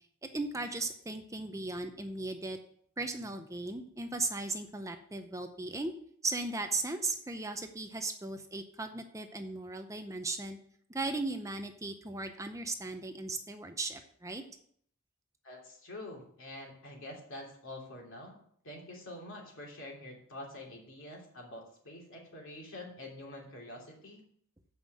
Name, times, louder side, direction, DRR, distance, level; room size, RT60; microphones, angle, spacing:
voice 1, 0.3-2.6 3.0-5.9 6.2-10.6 10.9-14.4, right 3 dB, 15° right, 6 dB, 0.6 m, -37 dB
voice 2, 15.4-18.4 18.6-24.2, left 1 dB, 65° left, -1 dB, 3.0 m, -46 dB
7.8 x 5.5 x 7.7 m, 0.63 s
head